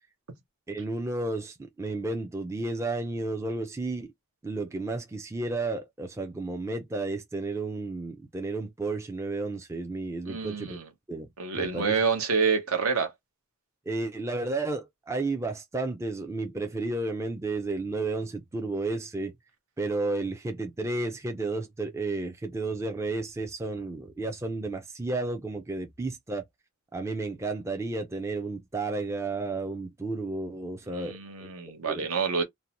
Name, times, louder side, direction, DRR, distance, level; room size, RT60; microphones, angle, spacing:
voice 1, 0.7-4.1 4.4-10.8 11.1-11.3 11.6-12.0 13.9-19.3 19.8-26.4 26.9-31.5 31.9-32.1, right 2 dB, 15° right, 0.4 m, -32 dB
voice 2, 10.3-10.9 11.4-13.1 30.9-32.4, right 5 dB, 75° right, 0.9 m, -27 dB
2.6 x 2.1 x 2.8 m
head